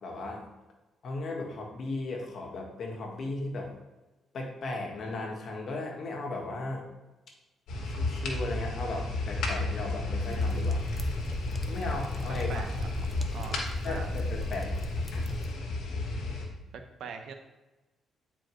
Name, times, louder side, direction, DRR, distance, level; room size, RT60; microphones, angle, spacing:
voice 1, 0.0-0.4 1.0-3.7 4.3-6.8 7.8-10.8 11.7-12.7 13.8-14.9, left 2 dB, 55° left, 0 dB, 1.6 m, -36 dB
sound 1, 7.7-16.4, left 2 dB, 80° left, 1.4 m, -32 dB
sound 2, 10.2-15.5, left 1 dB, 10° left, 0.7 m, -38 dB
voice 2, 12.3-13.1 13.3-14.1 16.7-17.3, right 6 dB, 70° right, 5 dB, 0.8 m, -42 dB
9.0 x 4.5 x 3.1 m, 1.1 s
cardioid pair, 90°, 0 cm